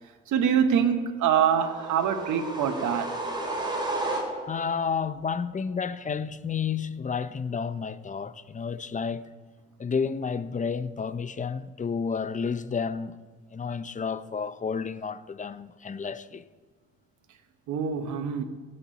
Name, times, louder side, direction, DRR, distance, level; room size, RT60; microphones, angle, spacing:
voice 1, 0.3-3.1 17.7-18.4, right 8 dB, 75° right, 1.0 m, -24 dB
sound 1, 1.5-4.7, right 2 dB, 15° right, 2.7 m, -32 dB
voice 2, 4.5-9.3 9.8-13.2 13.5-16.4, left 6 dB, 25° left, 0.6 m, -31 dB
17.5 x 8.7 x 4.1 m
cardioid pair, 90°, 30 cm